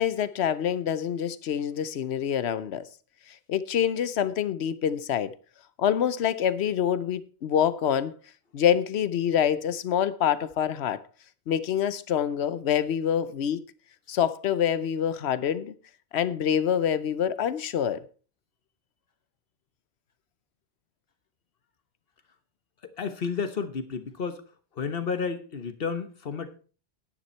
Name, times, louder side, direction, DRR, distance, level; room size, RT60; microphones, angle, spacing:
voice 1, 0.0-2.8 3.5-5.3 5.8-8.1 8.5-11.0 11.5-13.6 14.1-15.7 16.1-18.0, left 9 dB, 85° left, 1.0 m, -26 dB
voice 2, 22.8-24.4 24.7-26.6, left 5 dB, 65° left, 1.3 m, -31 dB
10.0 x 9.7 x 4.3 m
omnidirectional pair, 1.1 m